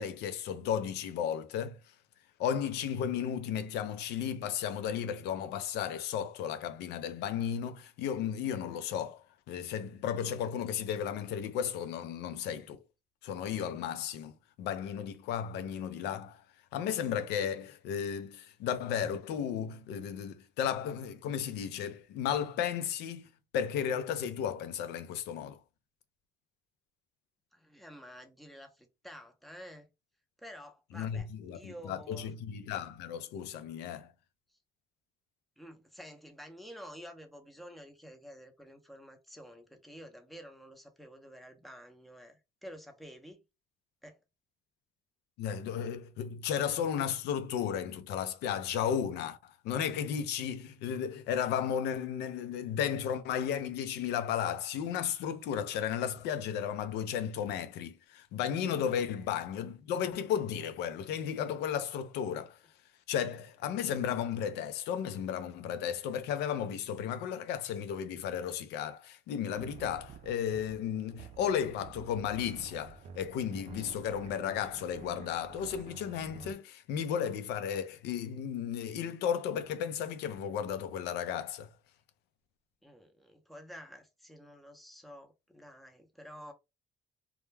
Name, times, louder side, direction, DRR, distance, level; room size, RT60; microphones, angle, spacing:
voice 1, 0.0-1.8 2.4-12.8 13.2-16.4 16.7-23.3 23.5-25.6 30.9-34.1 45.4-62.6 63.1-81.7, left 8 dB, 85° left, 0.5 m, -34 dB
voice 2, 27.5-29.9 30.4-31.3 31.5-32.3 34.5-34.6 35.6-43.4 44.0-44.2 59.2-59.3 82.8-86.5, equal, ahead, 0.6 m, -50 dB
sound 1, 69.5-76.5, right 7 dB, 40° right, 0.4 m, -50 dB
2.2 x 2.1 x 3.1 m
cardioid pair, 110°, 17 cm